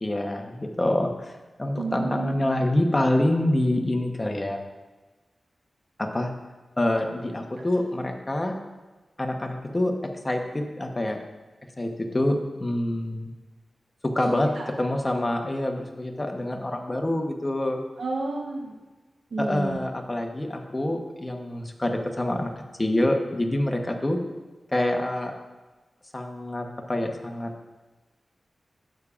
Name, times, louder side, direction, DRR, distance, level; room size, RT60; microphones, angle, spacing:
voice 1, 0.0-4.6 6.0-6.3 6.8-8.6 9.2-11.2 11.8-13.3 14.0-17.8 19.4-22.5 22.8-24.2 24.7-25.3 26.1-27.5, left 1 dB, 20° left, 3 dB, 1.0 m, -26 dB
voice 2, 1.8-2.5 14.6-14.7 18.0-18.7 19.3-19.8, right 3 dB, 70° right, -1 dB, 0.9 m, -30 dB
12.0 x 8.3 x 2.5 m, 1.2 s
wide cardioid pair, 110°, 0 cm